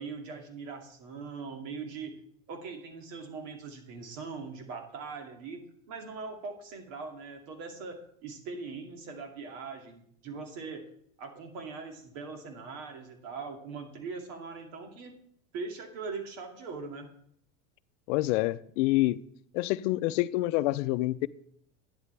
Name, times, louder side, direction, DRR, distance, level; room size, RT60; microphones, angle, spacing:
voice 1, 0.0-2.1 2.5-10.9 11.2-15.2 15.5-17.1, right 4 dB, 70° right, 2.4 m, -41 dB
voice 2, 18.1-19.2 19.5-21.3, left 18 dB, 65° left, 0.6 m, -27 dB
11.0 x 10.0 x 3.3 m
supercardioid pair, 110°, 39 cm